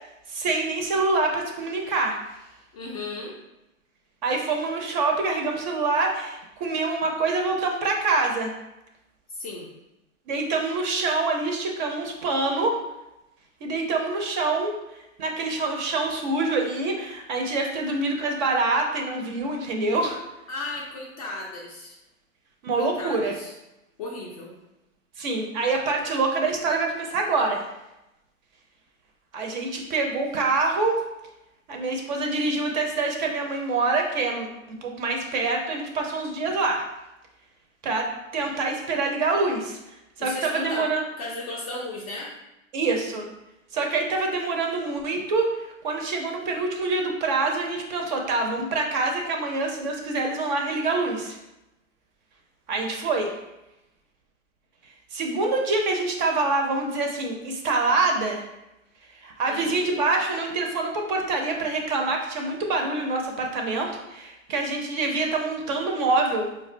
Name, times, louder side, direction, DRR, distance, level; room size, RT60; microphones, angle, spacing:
voice 1, 0.3-2.2 4.2-8.5 10.3-12.8 13.6-14.7 15.2-20.2 22.6-23.4 25.2-27.7 29.3-31.0 31.7-36.9 37.8-39.8 40.2-41.0 42.7-43.3 43.7-51.4 52.7-53.3 55.1-58.4 59.1-66.5, right 3 dB, 35° right, 2 dB, 0.5 m, -26 dB
voice 2, 2.7-3.4 9.3-9.7 20.5-22.0 22.8-23.5 24.0-24.5 40.2-42.3 59.5-59.9, left 2 dB, 30° left, -2 dB, 0.4 m, -35 dB
4.7 x 2.2 x 2.5 m, 0.94 s
hypercardioid pair, 125°, 40 cm